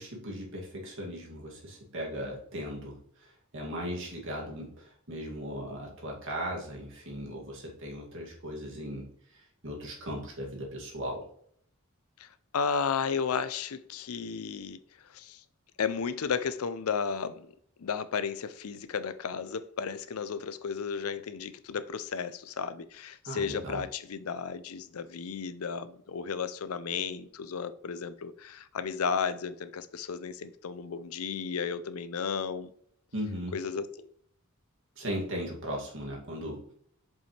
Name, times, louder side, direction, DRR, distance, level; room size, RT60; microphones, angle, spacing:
voice 1, 0.0-9.1 9.3-11.2 23.3-23.8 33.1-33.6 35.0-36.7, equal, 65° right, 2.4 m, -38 dB
voice 2, 12.5-14.8 15.1-15.4 15.8-17.5 17.8-32.7 33.5-34.1, left 6 dB, 85° left, 0.5 m, -33 dB
7.2 x 5.4 x 3.3 m
head